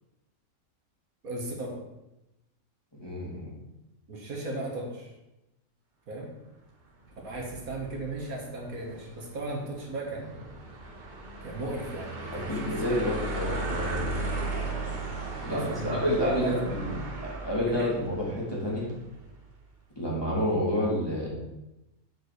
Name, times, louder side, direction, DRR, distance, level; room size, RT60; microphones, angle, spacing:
voice 1, 1.2-1.8 4.1-5.1 6.1-6.3 7.2-10.6 11.4-13.0 15.5-17.0 17.7-17.9, right 2 dB, 75° right, -1 dB, 2.0 m, -36 dB
voice 2, 3.0-3.5 12.3-14.0 15.4-16.8 17.2-18.9 20.0-21.3, equal, 15° left, -6 dB, 2.6 m, -29 dB
sound 1, 7.1-19.3, right 2 dB, 35° right, 1.4 m, -36 dB
7.6 x 4.7 x 6.7 m, 0.95 s
omnidirectional pair, 1.5 m